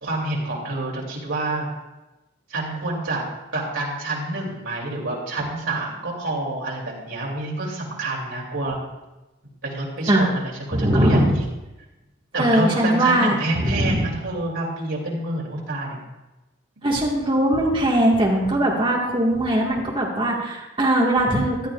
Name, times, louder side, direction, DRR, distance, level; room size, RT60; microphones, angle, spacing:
voice 1, 0.0-1.7 2.5-3.2 3.5-8.8 9.6-11.4 12.3-16.0 16.8-16.9, right 2 dB, 70° right, -3 dB, 2.8 m, -28 dB
voice 2, 10.7-11.3 12.4-14.1 16.8-21.7, right 1 dB, 25° right, -2 dB, 1.6 m, -20 dB
14.0 x 10.5 x 2.4 m, 1.0 s
head